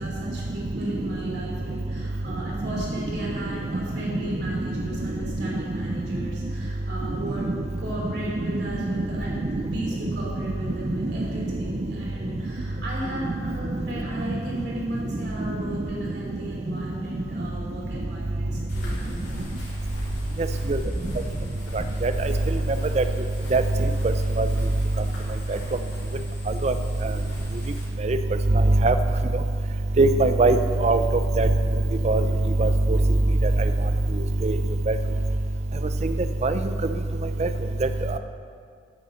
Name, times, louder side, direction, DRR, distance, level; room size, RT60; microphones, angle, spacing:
voice 1, 0.0-19.4, right 1 dB, 65° right, -4 dB, 3.0 m, -36 dB
sound 1, 18.7-27.8, equal, 80° left, 3.0 m, -38 dB
voice 2, 30.0-30.6 30.8-31.0 31.4-31.5 32.0-32.2 32.6-33.0 34.4-34.5 34.9-35.0 36.4-36.5 37.4-37.5, right 3 dB, 40° right, 9 dB, 0.5 m, -19 dB
8.3 x 6.6 x 7.6 m, 2.1 s
head